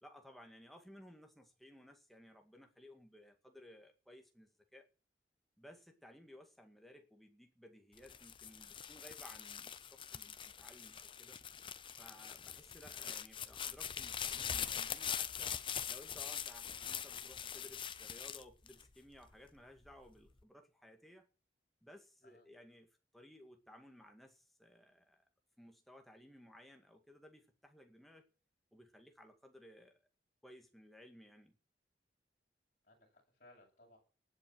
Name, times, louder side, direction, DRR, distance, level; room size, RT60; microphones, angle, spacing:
voice 1, 0.0-4.9 5.6-11.4 11.9-15.5 15.9-21.3 21.8-25.3 25.6-28.3 28.7-30.0 30.4-31.6, left 1 dB, ahead, 3 dB, 2.0 m, -59 dB
sound 1, 8.0-19.3 19.9-20.4, left 8 dB, 30° left, 0.7 m, -43 dB
voice 2, 32.8-34.0, left 1 dB, 45° left, -2 dB, 8.0 m, -64 dB
19.0 x 8.1 x 6.3 m, 0.37 s
head